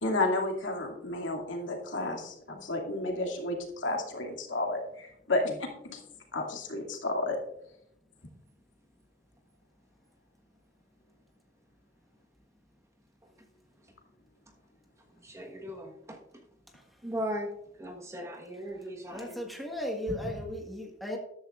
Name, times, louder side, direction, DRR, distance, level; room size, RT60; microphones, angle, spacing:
voice 1, 0.0-6.0 6.3-7.4, left 2 dB, 80° left, 1 dB, 2.4 m, -32 dB
voice 2, 15.2-16.2 17.0-17.5 17.8-19.4, equal, 15° right, 2 dB, 1.3 m, -37 dB
voice 3, 19.1-21.2, left 1 dB, ahead, 0 dB, 1.6 m, -36 dB
14.0 x 11.0 x 2.5 m, 0.78 s
head